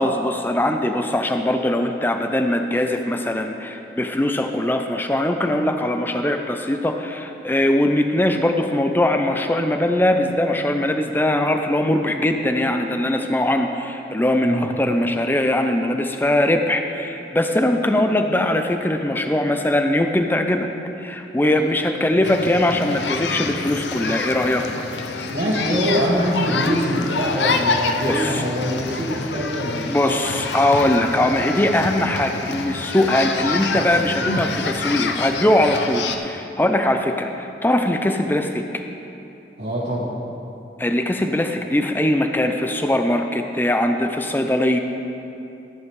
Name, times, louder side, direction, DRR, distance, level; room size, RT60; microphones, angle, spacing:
voice 1, 0.0-20.7 21.0-24.7 28.0-28.4 29.9-38.8 40.8-44.8, left 1 dB, 10° left, 5 dB, 0.4 m, -21 dB
sound 1, 22.2-36.2, left 4 dB, 85° left, 0.6 m, -27 dB
voice 2, 25.2-30.2 39.6-40.1, equal, 75° right, -10 dB, 1.8 m, -23 dB
13.5 x 10.5 x 3.2 m, 2.8 s
head